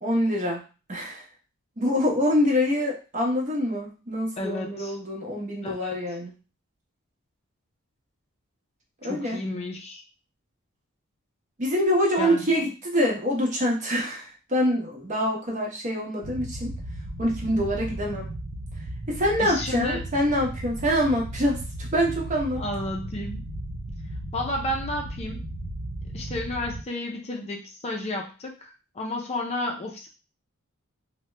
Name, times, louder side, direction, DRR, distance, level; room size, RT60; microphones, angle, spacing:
voice 1, 0.0-0.6 0.9-1.2 1.8-6.3 9.0-9.4 11.6-16.7 17.2-18.3 19.1-22.6, equal, 35° right, -1 dB, 0.9 m, -25 dB
voice 2, 4.4-5.0 5.6-6.0 9.0-10.0 12.2-12.6 19.4-20.0 22.6-23.5 24.3-25.4 26.1-30.1, left 1 dB, 30° left, 0 dB, 0.5 m, -32 dB
sound 1, 16.2-26.8, right 1 dB, 70° right, 0.6 m, -35 dB
2.8 x 2.1 x 3.2 m, 0.32 s
head